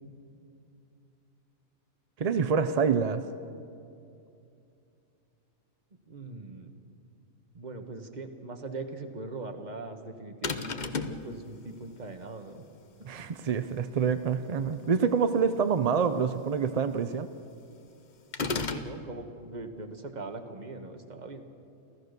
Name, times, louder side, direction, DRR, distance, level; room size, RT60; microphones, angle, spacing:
voice 1, 2.2-3.2 13.0-17.3, right 6 dB, 50° right, 10 dB, 0.4 m, -26 dB
voice 2, 6.1-6.7 7.5-12.6 18.4-21.4, right 3 dB, 35° right, 5 dB, 1.4 m, -41 dB
sound 1, 10.4-11.2 18.3-18.9, left 4 dB, 40° left, 0.8 m, -32 dB
29.0 x 14.0 x 6.6 m, 2.6 s
omnidirectional pair, 1.4 m